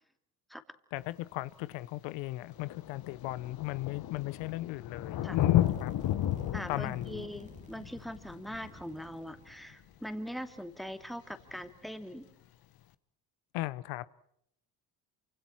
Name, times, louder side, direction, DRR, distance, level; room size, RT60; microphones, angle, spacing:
voice 1, 0.9-5.9 6.7-7.2 13.5-14.0, left 18 dB, 80° left, 0.9 m, -36 dB
Thunder, 1.0-1.1 2.1-2.2 2.4-9.7 11.4-11.5, left 13 dB, 55° left, 1.2 m, -33 dB
sound 1, 5.1-11.1, right 2 dB, 15° right, 2.4 m, -55 dB
voice 2, 6.5-12.3, equal, ahead, 2.4 m, -42 dB
28.0 x 26.0 x 4.4 m
supercardioid pair, 90°, 44 cm